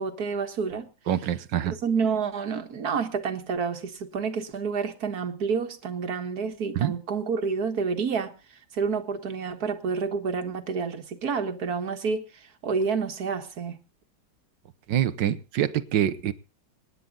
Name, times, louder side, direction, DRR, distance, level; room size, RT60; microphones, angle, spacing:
voice 1, 0.0-0.9 1.8-8.3 8.7-12.3 12.6-13.8, right 5 dB, 60° right, 1.9 m, -29 dB
voice 2, 1.1-1.7 6.8-6.9 14.9-16.3, right 10 dB, 90° right, 1.6 m, -25 dB
27.0 x 9.8 x 3.9 m
omnidirectional pair, 1.9 m